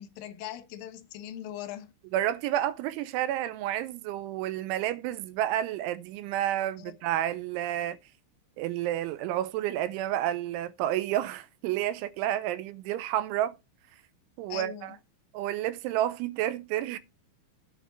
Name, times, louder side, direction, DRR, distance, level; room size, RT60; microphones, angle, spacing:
voice 1, 0.0-1.9 6.8-6.9 14.5-15.0, left 11 dB, 75° left, 2.1 m, -40 dB
voice 2, 2.1-8.0 8.6-13.5 14.4-15.0 15.3-17.0, right 12 dB, 85° right, 3.2 m, -30 dB
9.2 x 4.6 x 7.0 m
omnidirectional pair, 5.4 m